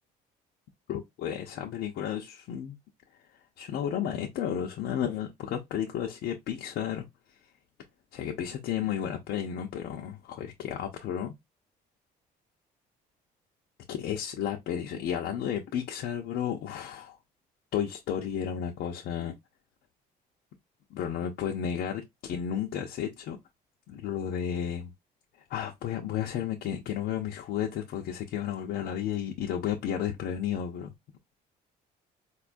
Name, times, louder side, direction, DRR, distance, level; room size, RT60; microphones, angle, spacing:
voice 1, 0.9-2.8 3.6-7.1 8.1-11.3 13.9-17.2 17.7-19.4 20.9-23.4 23.9-24.9 25.5-30.9, left 9 dB, 70° left, 0.6 m, -32 dB
4.1 x 2.3 x 2.5 m
cardioid pair, 110°, 17 cm